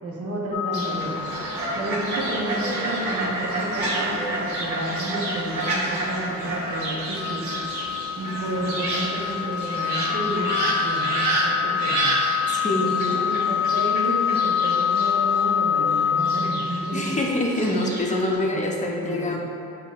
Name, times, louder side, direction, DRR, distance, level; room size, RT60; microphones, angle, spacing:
voice 1, 0.0-1.3 1.5-7.8 8.2-12.2 12.6-17.2 17.7-17.8 18.4-19.3, right 1 dB, 50° right, -4 dB, 0.9 m, -31 dB
sound 1, 0.5-2.4 2.8-2.9 5.6-17.4, left 8 dB, 90° left, 0.5 m, -26 dB
Fowl, 0.7-18.3, right 2 dB, 80° right, 1.2 m, -29 dB
voice 2, 12.5-13.3 16.9-19.4, left 1 dB, 25° left, -1 dB, 0.6 m, -25 dB
7.0 x 2.8 x 2.4 m, 2.6 s
cardioid pair, 90°, 30 cm